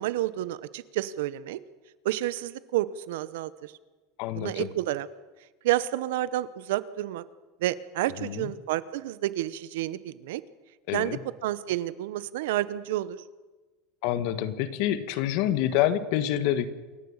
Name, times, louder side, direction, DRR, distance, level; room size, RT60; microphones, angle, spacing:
voice 1, 0.0-1.6 2.0-3.7 4.4-5.1 5.6-7.2 7.6-10.4 10.9-13.2, right 14 dB, 80° right, 16 dB, 0.9 m, -30 dB
voice 2, 4.2-4.7 8.2-8.5 10.9-11.2 14.0-16.7, left 11 dB, 55° left, 12 dB, 1.4 m, -27 dB
27.5 x 13.5 x 7.3 m, 1.3 s
supercardioid pair, 160°, 0 cm